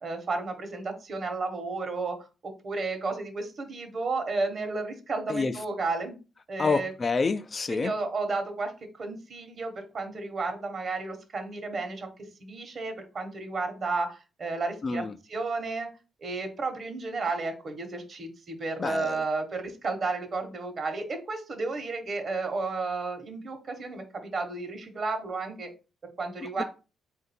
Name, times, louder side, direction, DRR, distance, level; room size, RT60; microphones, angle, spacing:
voice 1, 0.0-6.2 6.5-6.9 7.7-8.7 9.0-12.1 12.4-15.9 16.2-25.7 26.2-26.6, right 3 dB, 45° right, 1.1 m, -32 dB
voice 2, 6.6-7.9 14.8-15.1 18.8-19.2 26.4-26.6, left 4 dB, 35° left, 0.3 m, -28 dB
3.6 x 2.6 x 4.2 m
cardioid pair, 90°, 0 cm